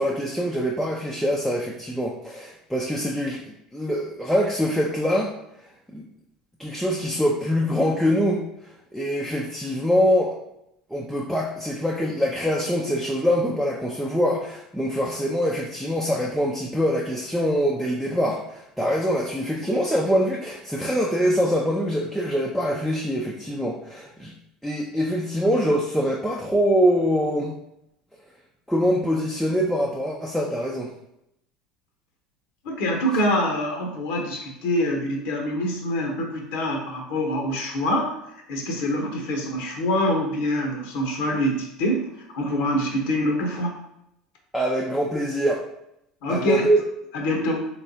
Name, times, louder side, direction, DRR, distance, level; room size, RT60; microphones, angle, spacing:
voice 1, 0.0-5.3 5.9-6.1 6.6-8.4 8.9-10.3 10.9-24.3 24.6-27.6 28.7-30.9 44.5-45.6 46.3-46.8, equal, ahead, -2 dB, 0.5 m, -24 dB
voice 2, 32.6-38.1 38.5-42.1 42.3-43.8 46.2-46.7 47.1-47.7, equal, 60° left, 1 dB, 0.8 m, -25 dB
3.4 x 3.1 x 2.7 m, 0.80 s
figure-of-eight pair, 70°, 3 cm